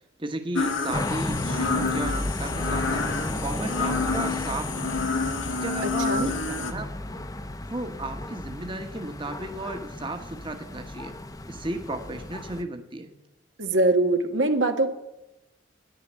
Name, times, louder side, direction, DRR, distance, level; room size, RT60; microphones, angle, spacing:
voice 1, 0.2-3.1 3.4-5.1 5.6-7.2 7.7-11.1 11.5-13.1, right 2 dB, 25° right, 5 dB, 1.2 m, -34 dB
sound 1, 0.5-6.7, left 4 dB, 85° left, 1.7 m, -29 dB
sound 2, 0.9-12.6, left 1 dB, 20° left, 0.7 m, -33 dB
voice 2, 5.8-6.3 13.6-14.9, right 2 dB, 80° right, 5 dB, 1.6 m, -23 dB
12.0 x 10.5 x 7.4 m, 0.96 s
head